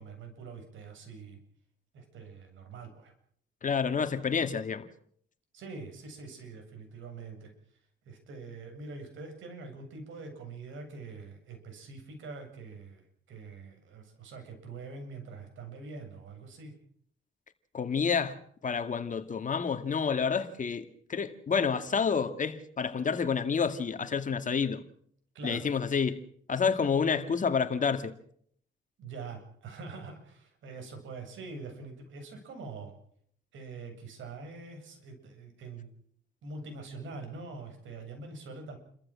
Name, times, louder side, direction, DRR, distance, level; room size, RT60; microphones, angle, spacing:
voice 1, 0.0-1.4 1.9-3.1 5.5-7.5 8.0-16.7 25.3-25.7 29.0-32.9 33.5-35.9 36.4-38.8, right 4 dB, 75° right, 7.7 m, -44 dB
voice 2, 3.6-4.9 17.7-24.8 25.4-26.2 26.5-28.1, left 6 dB, 40° left, 2.3 m, -29 dB
29.5 x 14.5 x 7.6 m
cardioid pair, 90°, 20 cm